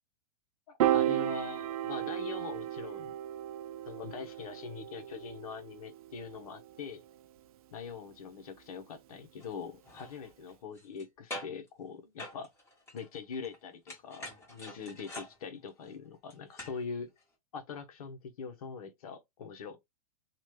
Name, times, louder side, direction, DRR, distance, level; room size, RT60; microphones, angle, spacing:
Piano, 0.8-7.2, right 12 dB, 70° right, 0.4 m, -34 dB
voice 1, 0.9-3.1 3.9-7.0 7.7-12.5 12.9-17.1 17.5-19.8, left 5 dB, 70° left, 1.1 m, -43 dB
sound 1, 9.4-9.5 9.8-11.0 11.3-11.7 12.2-13.6 13.9-16.8 17.2-17.3, left 1 dB, 15° left, 1.5 m, -46 dB
3.0 x 2.5 x 3.2 m
hypercardioid pair, 130°, 19 cm